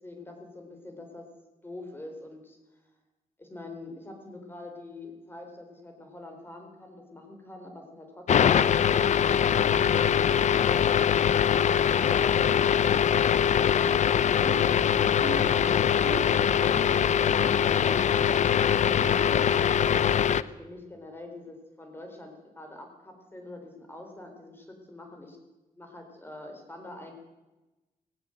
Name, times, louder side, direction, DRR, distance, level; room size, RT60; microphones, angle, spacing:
voice 1, 0.0-1.3 1.6-2.6 3.4-11.2 15.5-25.4 25.8-27.1, left 2 dB, 15° left, 4 dB, 4.1 m, -45 dB
sound 1, 8.3-20.4, left 8 dB, 55° left, 0.6 m, -23 dB
sound 2, 14.4-18.1, right 6 dB, 70° right, 2.3 m, -42 dB
18.5 x 18.0 x 7.9 m, 1.1 s
wide cardioid pair, 170°, 15 cm